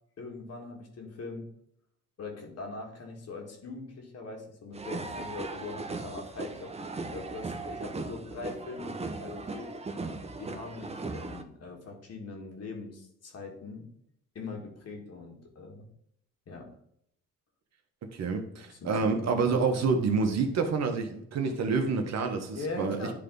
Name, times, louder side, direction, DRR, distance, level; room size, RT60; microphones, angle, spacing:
voice 1, 0.2-1.5 2.2-9.7 10.4-13.9 14.4-15.9 16.5-16.7 18.2-18.3 18.7-20.0 22.5-23.1, left 3 dB, 55° left, 1 dB, 2.0 m, -41 dB
sound 1, 4.7-11.4, right 3 dB, 20° right, 0.8 m, -38 dB
voice 2, 18.0-23.1, right 4 dB, 60° right, 5 dB, 1.3 m, -28 dB
10.5 x 3.5 x 3.9 m, 0.73 s
cardioid pair, 90°, 30 cm